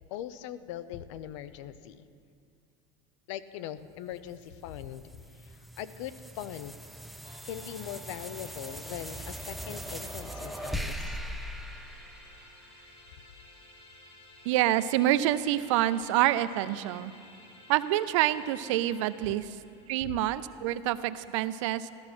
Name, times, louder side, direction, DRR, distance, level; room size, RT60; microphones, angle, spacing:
voice 1, 0.1-2.1 3.3-5.0 5.3-6.8 7.4-11.2 20.0-20.1, left 11 dB, 85° left, 14 dB, 0.7 m, -41 dB
sound 1, 4.3-12.9, equal, ahead, 0.6 m, -40 dB
sound 2, 7.2-20.3, left 1 dB, 35° left, 2.2 m, -54 dB
voice 2, 14.5-17.1 17.7-19.5 19.9-21.9, right 14 dB, 90° right, 14 dB, 0.6 m, -27 dB
14.5 x 13.0 x 6.0 m, 2.4 s
supercardioid pair, 135°, 15 cm